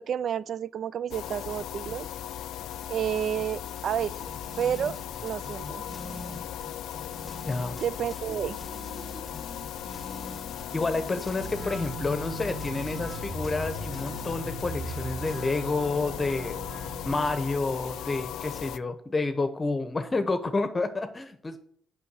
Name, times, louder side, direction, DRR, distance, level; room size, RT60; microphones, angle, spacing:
voice 1, 0.0-2.1 2.9-4.3 4.6-5.8 7.7-8.6, right 9 dB, 60° right, 0.3 m, -30 dB
sound 1, 1.1-18.8, left 11 dB, 80° left, 0.3 m, -38 dB
sound 2, 4.0-15.5, equal, 5° right, 1.3 m, -42 dB
voice 2, 7.5-7.8 10.7-16.6 17.0-21.6, left 3 dB, 25° left, 0.9 m, -29 dB
sound 3, 11.4-17.3, right 3 dB, 80° right, 1.5 m, -41 dB
6.9 x 5.5 x 6.2 m
cardioid pair, 90°, 0 cm